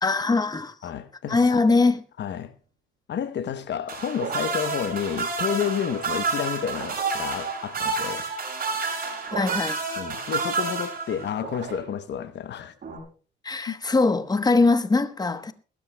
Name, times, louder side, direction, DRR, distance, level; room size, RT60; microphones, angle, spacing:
voice 1, 0.0-0.7 1.3-2.0 9.3-9.8 13.4-15.5, left 3 dB, 20° left, 1.0 m, -21 dB
voice 2, 0.8-1.6 2.2-2.5 3.1-8.3 10.0-12.7 13.7-13.8, left 8 dB, 60° left, 0.9 m, -30 dB
sound 1, 3.9-11.5 12.8-13.0, right 4 dB, 45° right, 6.6 m, -29 dB
sound 2, 4.1-4.7 6.7-7.3 9.2-9.9 11.3-12.1, right 8 dB, 70° right, 2.2 m, -37 dB
21.5 x 13.5 x 2.2 m
cardioid pair, 90°, 20 cm